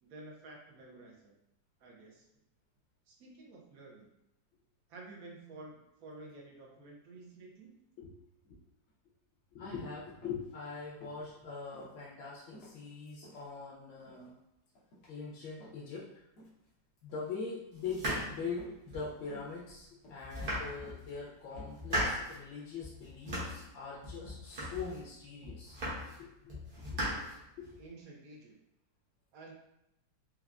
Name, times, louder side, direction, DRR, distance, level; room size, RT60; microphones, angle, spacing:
voice 1, 0.0-1.4 1.8-2.3 3.1-4.1 4.9-7.8 27.0-27.3 27.7-28.6 29.3-29.5, right 2 dB, 65° right, -1 dB, 1.0 m, -51 dB
voice 2, 9.5-14.3 15.1-16.1 17.0-25.8 26.2-26.6 26.9-27.0 27.6-27.7, left 5 dB, 85° left, -6 dB, 1.4 m, -42 dB
sound 1, 10.2-10.5 10.9-11.3 11.7-11.9 12.5-13.4 14.0-14.3 14.7-15.2 15.6-16.0 16.4-16.7 17.0-17.4 17.9-18.2 18.6-18.9 19.3-19.6 20.0-20.5 20.8-21.1 21.6-21.9, equal, 65° left, 1.4 m, -55 dB
sound 2, 17.8-19.2 19.7-19.8 20.2-21.1 21.5-22.4 22.8-23.7 24.0-25.0 25.4-26.2 26.5-27.8, equal, 40° right, 0.9 m, -38 dB
4.4 x 2.3 x 2.4 m, 0.86 s
omnidirectional pair, 1.9 m